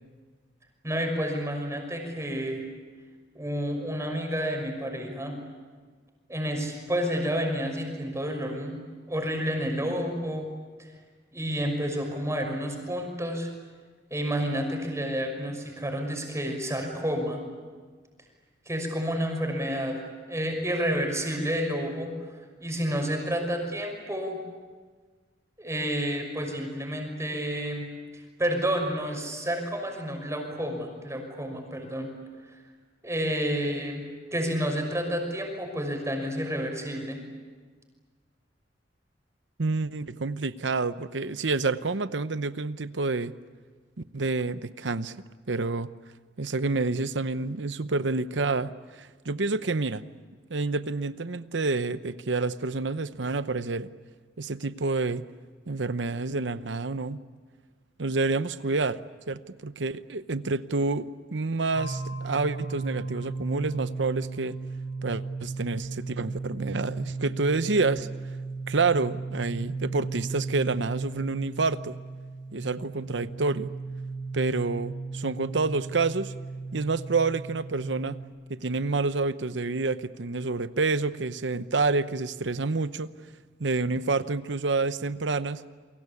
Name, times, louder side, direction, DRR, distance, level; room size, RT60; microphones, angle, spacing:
voice 1, 0.8-2.6 3.3-5.4 6.3-8.8 9.1-10.5 10.8-10.9 11.3-13.5 14.1-17.4 18.7-20.0 20.3-22.1 22.6-24.4 25.6-27.9 28.1-32.1 33.0-34.0 34.3-37.2, equal, 15° right, 3 dB, 6.0 m, -30 dB
voice 2, 39.6-43.3 44.1-45.2 45.5-45.9 46.4-50.0 50.5-53.9 54.4-55.2 55.7-57.2 58.0-59.0 59.3-64.6 65.0-68.1 68.7-72.0 72.5-73.7 74.3-76.3 76.7-78.2 78.5-83.1 83.6-85.6, right 3 dB, 75° right, 13 dB, 0.9 m, -28 dB
sound 1, 61.7-78.2, right 3 dB, 30° left, 4.3 m, -36 dB
29.0 x 24.0 x 8.5 m, 1.5 s
head